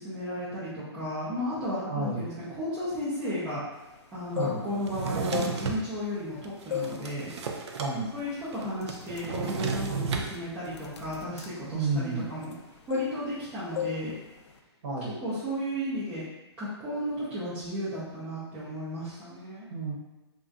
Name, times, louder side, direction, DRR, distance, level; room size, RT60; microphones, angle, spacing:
voice 1, 0.0-3.6 4.1-7.4 7.9-12.5 12.9-14.2 15.2-16.3 16.6-19.7, equal, 10° right, -12 dB, 0.4 m, -34 dB
voice 2, 1.9-2.3 4.3-4.6 7.8-8.1 11.7-12.2 14.8-15.2 19.7-19.9, right 3 dB, 40° right, -4 dB, 0.9 m, -30 dB
sound 1, 4.1-4.9 5.2-6.3 6.7-7.0 7.4-7.7 8.3-8.4 8.8-12.6 12.9-13.5 13.8-14.0 14.3-14.6, left 10 dB, 80° left, 0.5 m, -35 dB
Drawer open or close, 4.8-5.8 6.4-7.9 8.2-8.3 8.5-10.3, right 5 dB, 75° right, 0.4 m, -32 dB
2.4 x 2.2 x 3.8 m, 1.1 s
hypercardioid pair, 165°, 15 cm